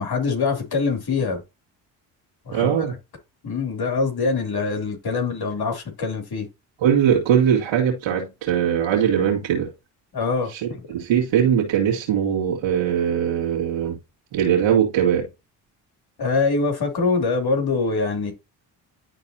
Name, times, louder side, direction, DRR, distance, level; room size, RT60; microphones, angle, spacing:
voice 1, 0.0-1.4 2.4-2.7 3.4-6.5 10.1-10.8 16.2-18.3, left 4 dB, 50° left, 3.1 m, -24 dB
voice 2, 2.5-2.9 6.8-9.7 10.5-10.6 10.9-14.0 14.3-15.3, right 8 dB, 80° right, 2.1 m, -20 dB
11.5 x 4.0 x 2.7 m
supercardioid pair, 55°, 47 cm